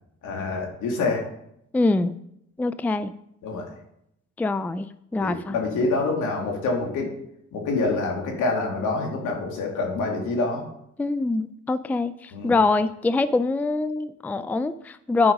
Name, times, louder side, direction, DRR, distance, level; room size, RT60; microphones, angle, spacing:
voice 1, 0.2-1.2 3.4-3.7 5.2-7.1 7.5-10.6 12.3-12.5, left 3 dB, 80° left, 0 dB, 2.6 m, -26 dB
voice 2, 1.7-2.2 2.6-3.1 4.4-5.6 11.0-15.3, left 3 dB, 5° left, 14 dB, 0.4 m, -24 dB
11.0 x 5.0 x 5.3 m, 0.77 s
cardioid pair, 90°, 30 cm